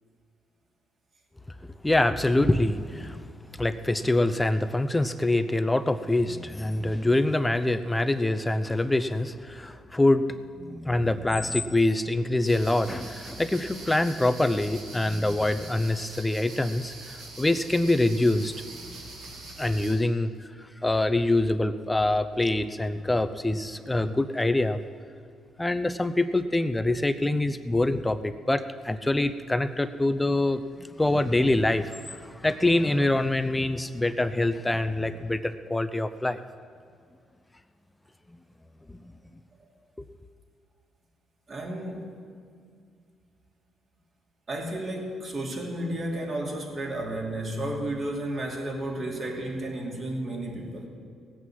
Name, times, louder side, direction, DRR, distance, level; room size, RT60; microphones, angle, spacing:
voice 1, 1.8-3.3 3.6-18.5 18.8-19.0 19.6-24.8 25.6-36.4 38.9-39.0, left 2 dB, 15° left, 10 dB, 0.7 m, -25 dB
sound 1, 12.4-19.9, right 3 dB, 75° right, 3.9 m, -43 dB
voice 2, 41.5-42.1 44.5-50.9, right 1 dB, 45° right, 0 dB, 3.1 m, -32 dB
17.5 x 8.4 x 7.6 m, 2.2 s
cardioid pair, 90°, 0 cm